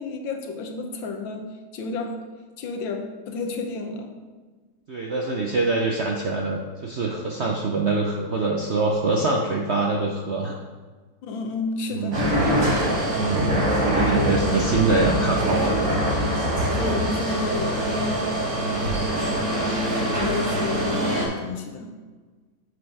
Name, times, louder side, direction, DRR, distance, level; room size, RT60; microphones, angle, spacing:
voice 1, 0.0-2.2 2.6-4.1 11.2-12.6 14.3-14.5 16.7-18.3 20.1-21.9, left 4 dB, 90° left, 4 dB, 1.7 m, -31 dB
voice 2, 4.9-10.5 11.9-12.2 13.1-13.6 13.9-15.7 18.6-18.9, right 3 dB, 70° right, 0 dB, 0.6 m, -24 dB
sound 1, 12.1-21.3, right 1 dB, 45° right, 1.9 m, -23 dB
8.0 x 5.2 x 4.7 m, 1.4 s
omnidirectional pair, 2.0 m